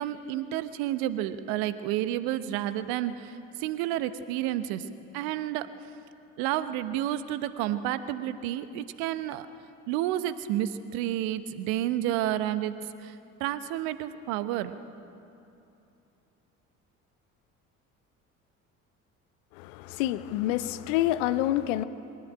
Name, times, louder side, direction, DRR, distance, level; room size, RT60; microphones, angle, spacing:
voice 1, 0.0-4.9 5.1-5.7 6.4-9.5 9.9-14.7, right 12 dB, 60° right, 1.1 m, -30 dB
voice 2, 19.5-21.8, left 14 dB, 65° left, 0.9 m, -27 dB
23.0 x 17.0 x 9.0 m
figure-of-eight pair, 55°, 41 cm